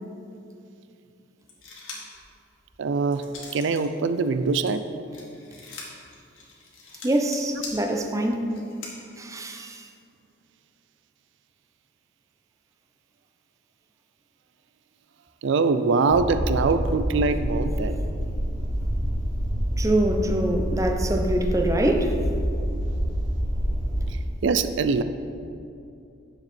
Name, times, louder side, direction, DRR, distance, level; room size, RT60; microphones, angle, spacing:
sound 1, 1.5-2.2 2.6-3.9 4.2-8.9, left 4 dB, 80° left, 2.0 m, -42 dB
voice 1, 2.8-3.2 3.5-4.8 15.4-18.0 24.1-25.0, right 4 dB, 65° right, 11 dB, 0.4 m, -23 dB
voice 2, 7.0-8.5 9.2-9.8 19.8-22.2, right 1 dB, 15° right, 4 dB, 0.6 m, -24 dB
sound 2, 16.1-24.1, equal, 40° right, 2.1 m, -27 dB
9.6 x 7.1 x 4.3 m, 2.5 s
head